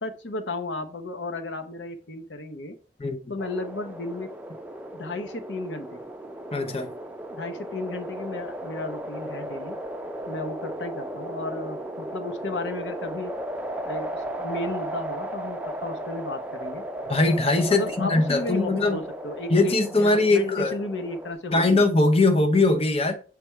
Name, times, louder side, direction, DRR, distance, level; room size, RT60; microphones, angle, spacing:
voice 1, 0.0-2.7 3.3-4.3 4.9-6.0 7.3-9.8 10.3-13.3 13.8-16.8 17.7-21.8, left 2 dB, 90° left, 0.9 m, -34 dB
sound 1, 3.4-21.3, right 1 dB, 10° right, 0.5 m, -35 dB
voice 2, 6.5-6.9 17.1-19.0 19.5-20.7 21.5-23.1, left 2 dB, 35° left, 0.7 m, -21 dB
7.4 x 3.5 x 4.5 m
head